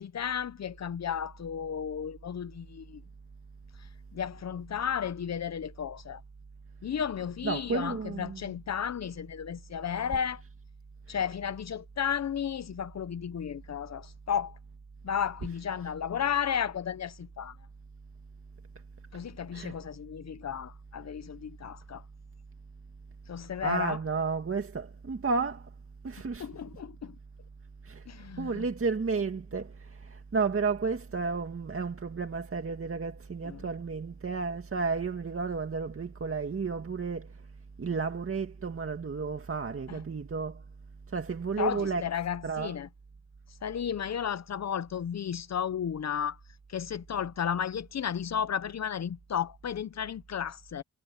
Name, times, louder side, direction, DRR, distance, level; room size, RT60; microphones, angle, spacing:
voice 1, 0.0-3.0 4.1-6.2 6.8-10.4 11.1-14.6 15.0-17.6 19.1-22.0 23.3-24.0 26.4-27.2 28.1-28.6 33.4-33.6 39.9-40.0 41.6-42.9 43.6-46.4 46.7-50.8, left 8 dB, 65° left, 0.8 m, -33 dB
voice 2, 7.4-8.4 11.1-11.2 19.5-19.8 23.6-25.7 26.0-26.5 27.8-28.0 28.4-37.3 37.8-40.6 41.1-42.0 42.4-42.8, right 4 dB, 50° right, 2.2 m, -32 dB
cardioid pair, 65°, 29 cm